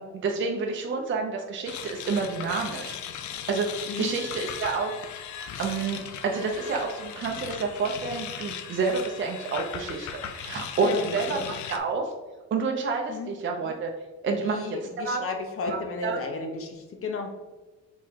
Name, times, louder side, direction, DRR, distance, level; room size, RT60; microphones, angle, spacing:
voice 1, 0.0-3.0 3.5-4.9 5.6-10.1 10.3-12.1 12.5-13.9 14.2-15.2 15.7-15.8 16.0-16.2, right 4 dB, 40° right, 1 dB, 0.6 m, -29 dB
sound 1, 1.7-11.8, left 9 dB, 70° left, 0.5 m, -38 dB
voice 2, 10.8-11.5 13.1-13.3 14.3-17.3, left 4 dB, 45° left, 4 dB, 0.8 m, -33 dB
4.7 x 3.6 x 2.8 m, 1.2 s
cardioid pair, 90°, 30 cm